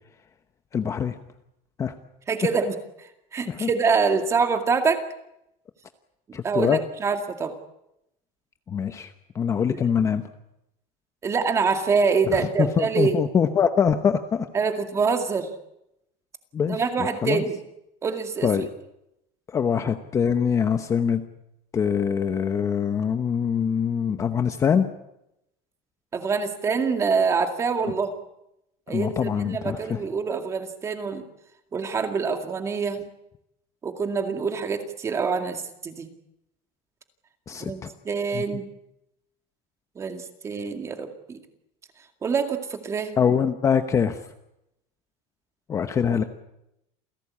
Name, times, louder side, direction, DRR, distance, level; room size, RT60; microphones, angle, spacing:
voice 1, 0.7-1.2 1.8-1.9 3.5-3.7 6.3-6.8 8.7-10.2 12.3-14.5 16.5-17.4 18.4-18.7 19.5-21.2 21.7-24.9 28.9-30.0 37.5-37.9 38.3-38.6 43.2-44.2 45.7-46.2, left 7 dB, 20° left, 8 dB, 0.9 m, -24 dB
voice 2, 2.3-2.8 3.3-5.1 6.4-7.5 9.7-9.8 11.2-13.2 14.5-15.5 16.7-17.6 18.0-18.5 26.1-28.1 28.9-31.2 31.7-33.0 33.8-36.1 37.6-38.7 40.0-41.4 42.2-43.1, right 5 dB, 20° right, 6 dB, 2.2 m, -25 dB
28.5 x 17.0 x 8.5 m, 0.84 s
cardioid pair, 175°, 16 cm